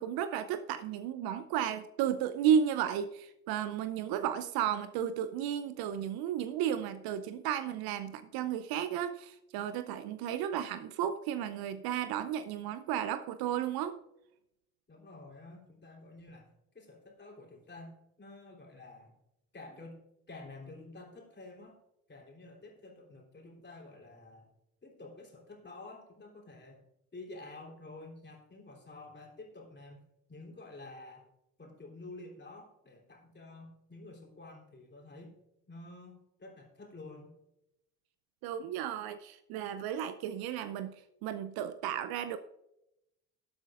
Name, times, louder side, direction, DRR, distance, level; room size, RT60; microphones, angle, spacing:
voice 1, 0.0-14.0 38.4-40.9 41.2-42.4, right 9 dB, 55° right, 12 dB, 0.7 m, -33 dB
voice 2, 14.9-19.2 19.5-20.0 20.3-21.8 22.1-24.5 24.8-26.8 27.1-30.0 30.3-31.3 31.6-35.4 35.7-37.3, left 2 dB, 25° left, 0 dB, 3.5 m, -50 dB
18.5 x 7.9 x 2.5 m, 0.86 s
figure-of-eight pair, 55°, 46 cm